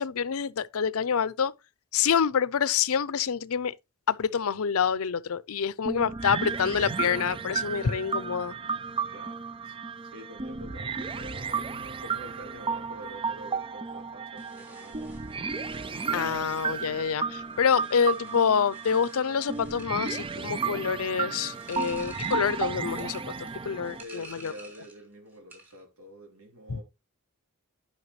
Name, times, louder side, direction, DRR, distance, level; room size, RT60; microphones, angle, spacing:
voice 1, 0.0-1.5 1.9-3.7 4.1-8.5 16.1-24.5 26.7-26.8, left 7 dB, 70° left, 0.5 m, -27 dB
sound 1, 5.9-24.0, right 5 dB, 25° right, 0.4 m, -33 dB
voice 2, 9.1-9.8 10.0-15.2 24.0-26.8, equal, 70° right, 3.3 m, -47 dB
sound 2, 14.3-25.1 25.3-25.8, right 2 dB, 10° right, 3.3 m, -51 dB
11.0 x 5.7 x 3.0 m
head